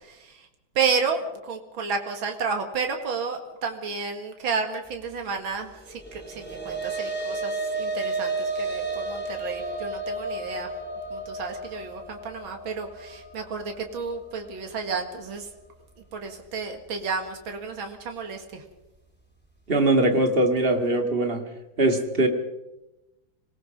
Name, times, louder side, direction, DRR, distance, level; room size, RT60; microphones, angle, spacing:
voice 1, 0.0-0.4 0.8-10.7 11.1-15.5 16.1-18.6, right 5 dB, 85° right, 4 dB, 2.7 m, -31 dB
sound 1, 6.0-14.5, right 2 dB, 5° left, 3.8 m, -32 dB
voice 2, 19.7-21.4 21.8-22.3, right 2 dB, 30° right, 5 dB, 2.3 m, -21 dB
25.5 x 19.0 x 5.4 m, 0.98 s
omnidirectional pair, 2.1 m